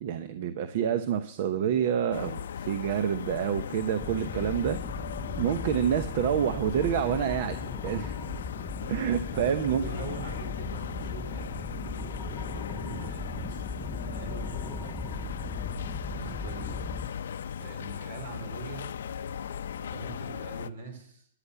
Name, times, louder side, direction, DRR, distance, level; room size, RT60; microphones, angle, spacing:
voice 1, 0.0-4.8 5.4-7.6 7.8-8.2 8.9-9.8, right 9 dB, 55° right, 10 dB, 0.9 m, -28 dB
sound 1, 2.1-20.7, left 8 dB, 80° left, 0.6 m, -38 dB
sound 2, 4.0-17.1, left 2 dB, 5° left, 0.5 m, -38 dB
voice 2, 9.3-11.7 12.4-13.7 14.1-15.0 16.2-16.9 17.6-18.9 19.8-21.3, right 4 dB, 75° right, 5 dB, 4.7 m, -43 dB
14.0 x 10.0 x 7.0 m, 0.68 s
hypercardioid pair, 135°, 0 cm